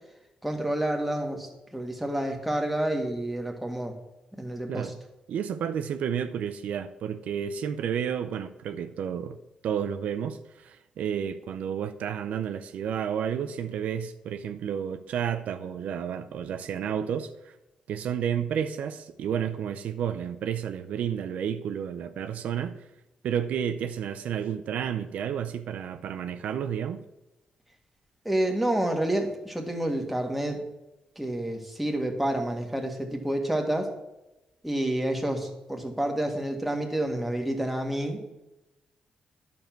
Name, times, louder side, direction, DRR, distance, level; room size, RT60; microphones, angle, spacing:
voice 1, 0.4-4.0 4.3-4.9 28.3-30.6 31.2-33.9 34.6-38.2, right 1 dB, 5° right, 1.9 m, -29 dB
voice 2, 5.3-9.4 9.6-17.5 17.9-22.8 23.2-27.0, right 8 dB, 80° right, 0.7 m, -31 dB
10.5 x 7.2 x 6.0 m
cardioid pair, 95°, 2 cm